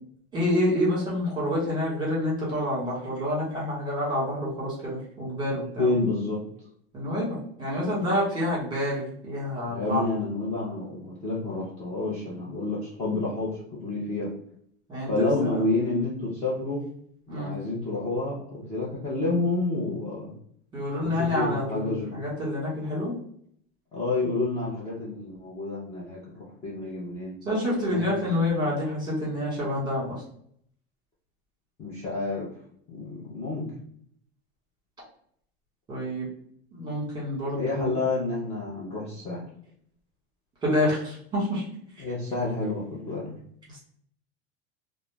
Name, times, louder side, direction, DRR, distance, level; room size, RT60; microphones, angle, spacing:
voice 1, 0.3-5.9 6.9-10.1 14.9-15.6 17.3-17.5 20.7-23.1 27.4-30.2 35.9-36.3 36.7-37.9 40.6-41.6, left 1 dB, 15° right, -5 dB, 1.2 m, -28 dB
voice 2, 5.8-6.4 9.7-14.3 15.1-16.8 17.3-20.3 21.0-22.1 23.9-27.3 27.9-28.7 31.8-32.5 32.9-33.6 37.6-39.4 42.0-43.3, left 2 dB, 20° left, -7 dB, 0.6 m, -29 dB
2.4 x 2.0 x 3.2 m, 0.65 s
supercardioid pair, 150°, 32 cm